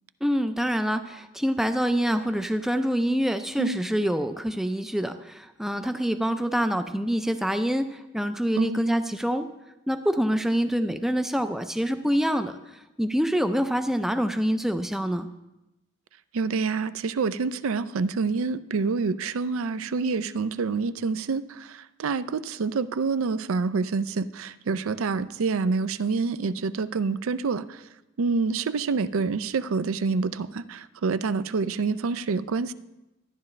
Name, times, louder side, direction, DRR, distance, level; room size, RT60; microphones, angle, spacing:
voice 1, 0.2-9.5 9.9-15.3, equal, ahead, 8 dB, 0.4 m, -26 dB
voice 2, 16.3-27.8 28.2-32.7, right 4 dB, 90° right, 14 dB, 0.4 m, -27 dB
13.0 x 10.5 x 3.2 m, 0.97 s
head